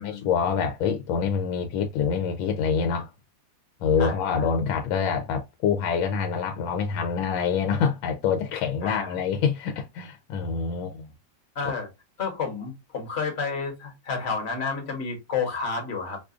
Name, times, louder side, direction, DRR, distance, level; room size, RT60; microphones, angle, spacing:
voice 1, 0.0-3.1 3.8-11.1, left 6 dB, 85° left, 1.4 m, -26 dB
voice 2, 4.0-4.5 8.8-9.2 11.5-11.9 12.2-16.2, left 5 dB, 40° left, 1.2 m, -30 dB
4.7 x 2.4 x 2.4 m
omnidirectional pair, 2.1 m